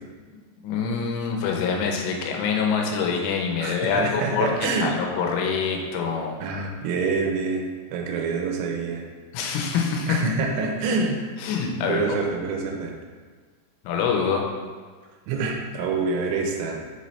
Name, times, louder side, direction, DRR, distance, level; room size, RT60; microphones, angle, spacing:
voice 1, 0.6-6.4 9.3-10.2 11.4-12.0 13.8-14.4, left 6 dB, 85° left, 1 dB, 3.3 m, -25 dB
voice 2, 3.6-5.0 6.4-7.6 7.9-9.1 10.1-11.2 11.9-12.9 15.3-16.8, right 4 dB, 85° right, 2 dB, 3.2 m, -26 dB
7.2 x 4.1 x 3.1 m, 1.5 s
omnidirectional pair, 5.5 m